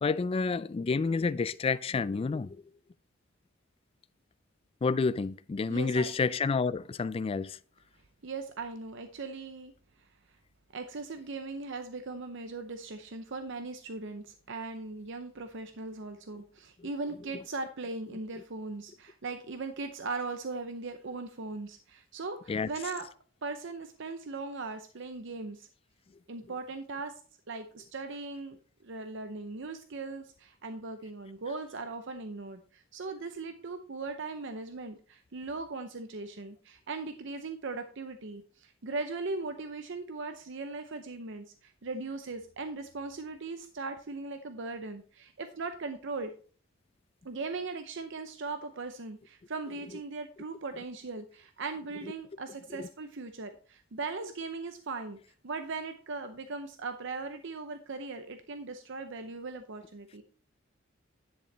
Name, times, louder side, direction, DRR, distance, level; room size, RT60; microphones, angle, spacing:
voice 1, 0.0-2.6 4.8-7.6 22.5-22.7 52.7-52.9, left 4 dB, 30° left, 0.3 m, -29 dB
voice 2, 5.7-6.1 8.2-9.7 10.7-23.1 23.4-25.7 26.3-27.2 27.5-46.3 47.2-55.2 55.4-60.2, right 3 dB, 65° right, 0.7 m, -39 dB
10.5 x 6.9 x 3.3 m
head